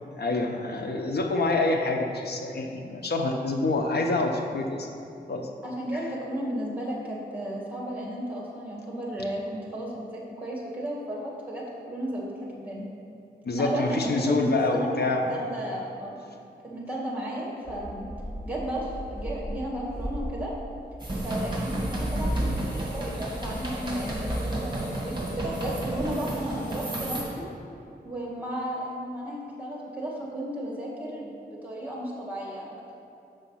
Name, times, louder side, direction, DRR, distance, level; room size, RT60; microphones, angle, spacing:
voice 1, 0.2-4.9 5.3-5.5 5.9-6.0 13.4-15.3, left 2 dB, 70° left, 2 dB, 0.9 m, -26 dB
voice 2, 5.6-12.9 13.6-15.0 15.3-16.1 16.6-18.1 18.4-20.5 21.2-27.3 28.0-32.9, right 1 dB, 10° right, -4 dB, 2.1 m, -34 dB
sound 1, 17.6-26.0, right 1 dB, 15° left, 2.0 m, -35 dB
sound 2, 21.0-27.2, right 1 dB, 25° right, 1.7 m, -33 dB
6.7 x 6.1 x 5.8 m, 2.6 s
wide cardioid pair, 110°, 17 cm